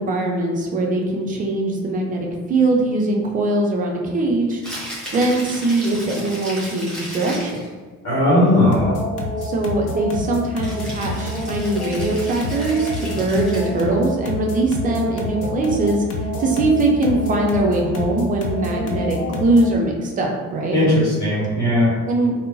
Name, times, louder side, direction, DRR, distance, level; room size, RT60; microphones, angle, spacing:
voice 1, 0.0-4.6 5.1-7.6 9.4-16.0 16.4-20.8 22.1-22.3, right 2 dB, 20° right, 0 dB, 0.3 m, -21 dB
Rattle (instrument), 4.5-7.7 10.6-13.8, equal, ahead, 1.2 m, -35 dB
voice 2, 8.0-8.9 20.7-21.9, left 1 dB, 40° left, -10 dB, 1.2 m, -17 dB
sound 1, 8.7-19.8, left 1 dB, 75° left, 0.6 m, -28 dB
3.5 x 2.0 x 2.5 m, 1.3 s
figure-of-eight pair, 55°, 47 cm